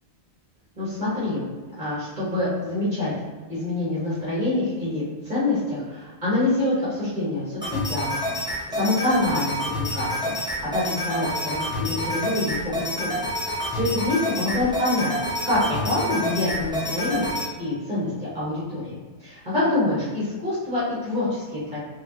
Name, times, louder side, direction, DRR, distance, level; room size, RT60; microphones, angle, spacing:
voice 1, 0.8-1.4 1.8-3.1 3.5-8.4 8.7-15.1 15.4-18.9 19.2-21.8, left 2 dB, 40° right, -11 dB, 1.8 m, -26 dB
sound 1, 7.6-17.5, left 1 dB, 5° right, 1.0 m, -28 dB
4.8 x 3.0 x 2.9 m, 1.4 s
omnidirectional pair, 1.1 m